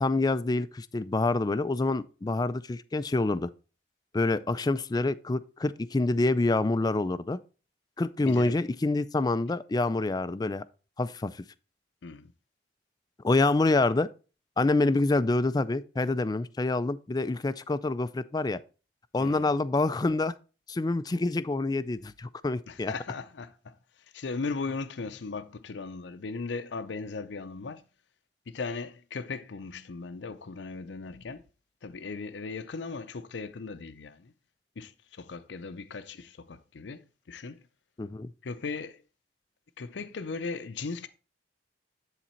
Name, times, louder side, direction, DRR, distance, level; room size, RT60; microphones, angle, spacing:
voice 1, 0.0-3.5 4.1-7.4 8.0-10.6 11.0-11.4 13.2-14.1 14.6-18.6 19.1-20.3 20.7-22.9 38.0-38.3, left 2 dB, 20° left, 0.4 m, -27 dB
voice 2, 8.2-8.6 12.0-12.3 19.2-19.5 22.7-23.8 24.1-27.8 28.5-31.4 31.8-34.3 34.8-37.6 38.4-39.0 39.8-41.1, left 4 dB, 75° left, 0.6 m, -37 dB
10.0 x 4.1 x 4.3 m
head